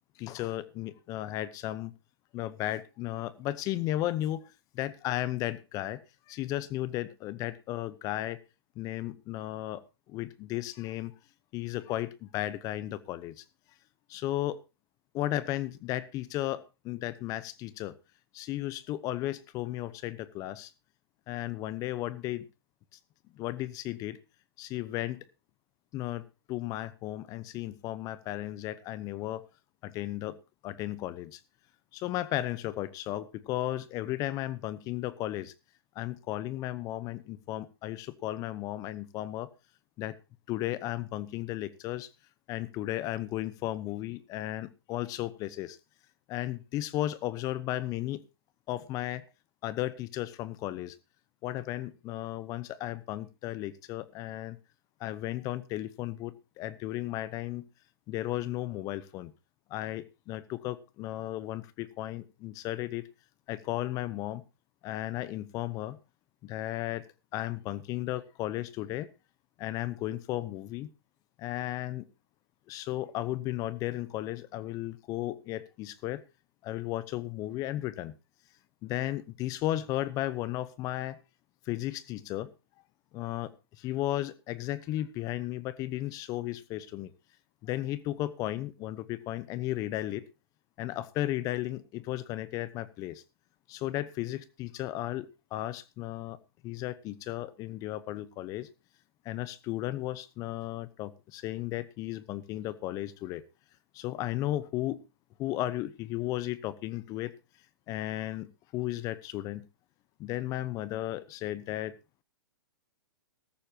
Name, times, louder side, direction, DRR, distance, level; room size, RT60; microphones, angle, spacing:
voice 1, 0.2-1.9 2.3-8.4 8.8-9.8 10.1-11.1 11.5-13.4 14.1-14.6 15.1-18.0 18.3-20.7 21.3-22.5 23.3-24.2 24.6-25.3 25.9-29.4 29.8-30.4 30.6-31.4 31.9-35.5 35.9-39.5 40.0-40.1 40.5-42.1 42.5-45.8 46.3-48.2 48.7-49.2 49.6-51.0 51.4-54.6 55.0-57.7 58.1-59.3 59.7-63.0 63.5-64.4 64.8-66.0 66.4-67.1 67.3-69.1 69.6-70.9 71.4-72.1 72.7-76.2 76.6-78.1 78.8-81.2 81.7-82.5 83.1-87.1 87.6-90.2 90.8-93.2 93.7-96.4 96.6-98.7 99.2-103.4 103.9-105.0 105.4-107.4 107.9-109.7 110.2-111.9, left 15 dB, 25° left, 18 dB, 0.8 m, -34 dB
15.0 x 14.0 x 2.8 m, 0.28 s
hypercardioid pair, 150°, 14 cm